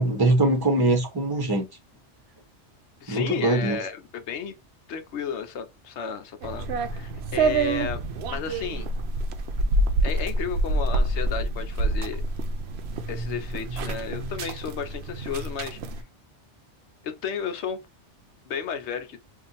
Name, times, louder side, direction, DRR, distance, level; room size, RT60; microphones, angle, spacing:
voice 1, 0.0-1.6 3.1-3.8, right 2 dB, 20° right, 0.8 m, -22 dB
voice 2, 3.0-4.5 4.9-6.7 6.9-8.0 8.3-8.9 10.0-12.2 13.1-15.8 17.0-17.8 18.5-19.2, left 7 dB, 70° left, 0.9 m, -33 dB
sound 1, 6.4-16.0, right 2 dB, 65° right, 0.8 m, -27 dB
2.8 x 2.6 x 3.8 m
omnidirectional pair, 1.2 m